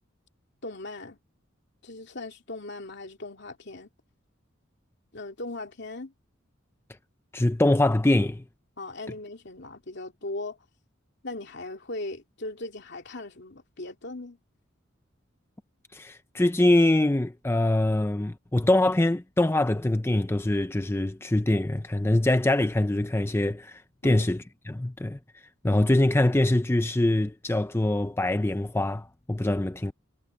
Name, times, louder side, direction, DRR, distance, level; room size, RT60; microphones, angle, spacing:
voice 1, 0.6-1.2 1.8-3.9 5.1-6.1 8.8-10.6 11.2-14.4 24.0-24.3, left 2 dB, 60° left, 2.6 m, -38 dB
voice 2, 7.3-8.4 15.9-25.2 25.6-29.9, left 1 dB, 10° left, 0.5 m, -24 dB
head